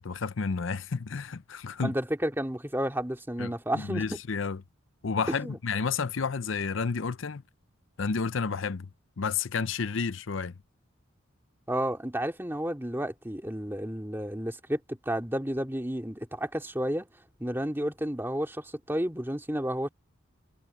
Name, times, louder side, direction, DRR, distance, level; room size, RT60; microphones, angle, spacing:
voice 1, 0.0-1.9 3.4-4.6 5.0-7.4 8.0-8.9 9.2-10.5, left 5 dB, 70° left, 0.6 m, -31 dB
voice 2, 1.8-4.0 5.4-5.6 11.7-17.1 17.4-19.9, equal, 10° right, 2.5 m, -31 dB
head